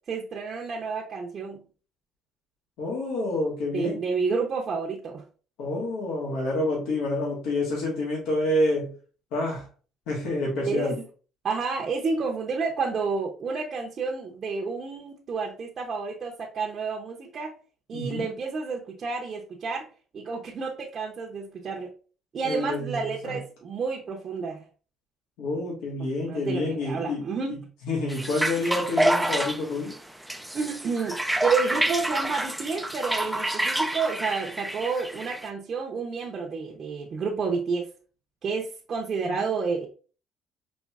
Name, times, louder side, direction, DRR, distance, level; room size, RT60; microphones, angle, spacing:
voice 1, 0.1-1.7 3.7-5.2 10.6-11.0 11.4-17.5 17.9-19.9 20.1-21.9 22.3-24.6 26.0-27.6 30.5-37.9 38.4-39.9, right 4 dB, 40° right, -1 dB, 0.7 m, -30 dB
voice 2, 2.8-4.0 5.6-8.9 9.3-9.7 10.1-10.9 17.9-18.3 22.4-23.4 25.4-27.2 27.8-29.9 39.2-39.4, left 2 dB, 85° left, -3 dB, 1.5 m, -28 dB
sound 1, 28.1-35.5, right 1 dB, 5° right, 0.3 m, -28 dB
5.1 x 3.0 x 2.4 m, 0.38 s
cardioid pair, 130°, 0 cm